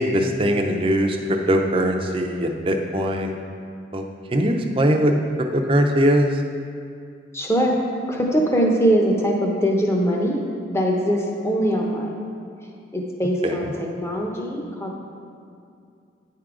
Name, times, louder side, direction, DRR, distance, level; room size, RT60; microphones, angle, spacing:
voice 1, 0.0-3.3 3.9-5.1 5.5-6.4 13.4-13.7, equal, 30° right, 3 dB, 0.5 m, -21 dB
voice 2, 7.3-7.8 8.1-10.4 10.7-12.1 12.9-15.0, equal, 15° left, 0 dB, 0.7 m, -22 dB
9.6 x 3.7 x 4.7 m, 2.4 s
head